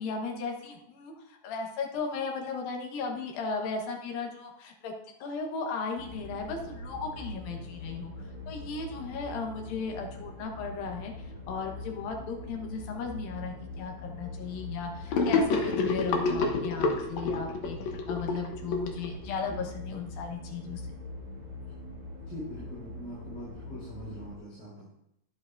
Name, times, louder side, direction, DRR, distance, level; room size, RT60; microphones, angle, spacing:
voice 1, 0.0-4.9 5.2-20.8, left 5 dB, 85° left, 2 dB, 3.0 m, -36 dB
sound 1, 6.0-24.4, left 1 dB, 50° right, 2.3 m, -43 dB
Gurgling / Sink (filling or washing), 15.1-19.6, left 3 dB, 65° left, 1.9 m, -28 dB
voice 2, 22.3-24.9, equal, 30° left, -10 dB, 4.6 m, -42 dB
10.5 x 9.5 x 2.6 m, 0.76 s
omnidirectional pair, 4.0 m